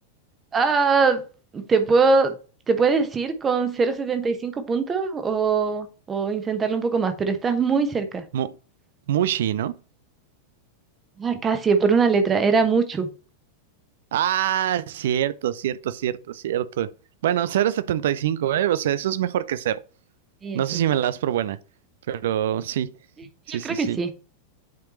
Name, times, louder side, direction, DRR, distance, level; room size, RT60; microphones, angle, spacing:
voice 1, 0.5-1.2 1.5-2.3 2.7-8.2 11.2-13.1 20.4-20.8 23.5-24.1, right 4 dB, 20° right, 1.2 m, -22 dB
voice 2, 9.1-9.7 14.1-16.9 17.2-19.8 20.5-21.6 22.1-22.9 23.5-24.0, right 11 dB, 60° right, 0.5 m, -24 dB
9.3 x 4.9 x 3.1 m
figure-of-eight pair, 90°, 0 cm